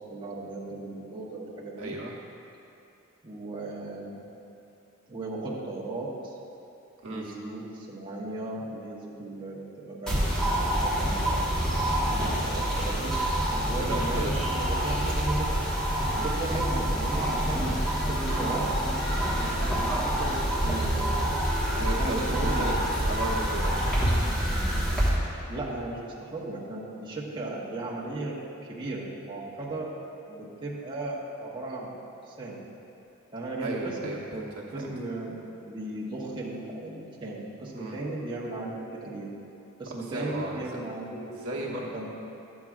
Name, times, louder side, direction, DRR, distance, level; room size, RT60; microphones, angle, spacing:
voice 1, 0.1-2.0 3.2-4.2 5.1-6.3 7.1-11.5 12.1-13.2 13.6-15.5 16.2-18.7 19.9-21.1 21.8-22.8 23.3-23.4 25.5-29.9 30.3-31.9 32.3-32.6 33.3-39.3 39.8-41.2 41.5-42.1, right 2 dB, 25° right, -6 dB, 0.9 m, -36 dB
voice 2, 1.8-2.1 7.0-7.2 13.5-14.4 16.1-16.3 18.3-18.4 21.8-22.7 23.1-24.1 33.6-34.9 37.7-38.0 40.1-40.6 41.2-41.9, right 1 dB, 80° right, -3 dB, 1.0 m, -35 dB
sound 1, 10.1-25.1, right 1 dB, 5° left, 1.3 m, -27 dB
10.0 x 7.2 x 2.4 m, 2.8 s
head